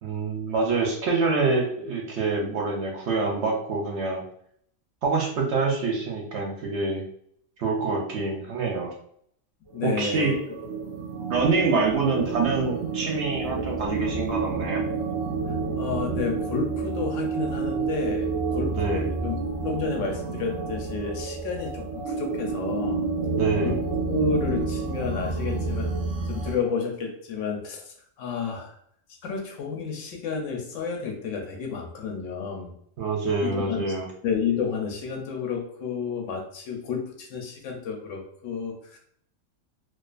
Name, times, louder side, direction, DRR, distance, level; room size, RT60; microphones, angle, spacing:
voice 1, 0.0-4.2 5.0-7.0 7.6-8.9 9.8-10.4 11.3-14.8 18.7-19.1 23.3-23.8 33.0-34.1, right 4 dB, 65° right, 0 dB, 0.8 m, -26 dB
voice 2, 9.7-10.6 15.5-19.4 19.6-23.1 23.6-25.9 26.3-28.7 29.2-32.7 33.4-33.8 34.2-39.0, left 5 dB, 75° left, 2 dB, 0.9 m, -31 dB
sound 1, 10.1-26.5, right 4 dB, 30° right, 0.6 m, -29 dB
2.4 x 2.3 x 2.3 m, 0.66 s
omnidirectional pair, 1.4 m